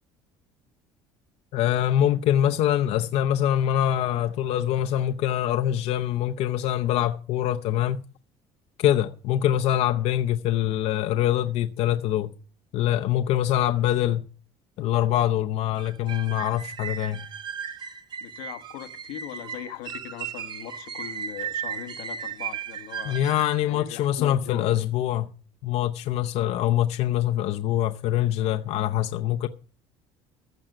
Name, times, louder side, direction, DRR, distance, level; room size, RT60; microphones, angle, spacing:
voice 1, 1.5-8.0 8.8-12.3 12.7-14.2 14.8-17.2 23.1-25.3 25.6-29.5, left 11 dB, 65° left, 0.7 m, -24 dB
sound 1, 15.8-23.6, right 8 dB, 40° right, 1.6 m, -36 dB
voice 2, 18.2-23.3 23.7-24.6, left 11 dB, 90° left, 1.2 m, -40 dB
14.5 x 6.3 x 7.6 m
cardioid pair, 115°, 12 cm